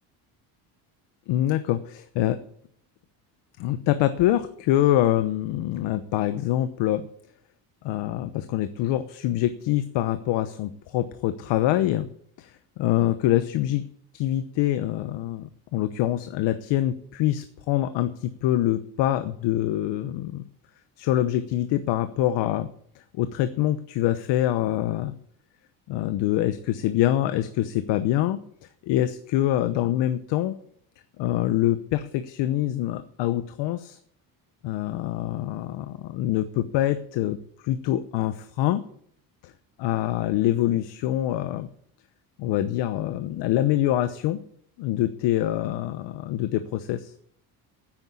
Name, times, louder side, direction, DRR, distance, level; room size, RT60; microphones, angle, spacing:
voice 1, 1.3-2.4 3.6-7.0 7.8-12.1 12.4-12.5 12.8-13.8 14.1-20.4 21.0-22.7 23.1-25.1 25.9-28.4 28.8-30.5 31.2-34.0 34.6-37.4 37.6-38.8 39.8-41.7 42.4-44.4 44.8-47.1, left 13 dB, 75° left, 11 dB, 1.0 m, -25 dB
9.8 x 9.0 x 8.2 m, 0.65 s
cardioid pair, 115°, 43 cm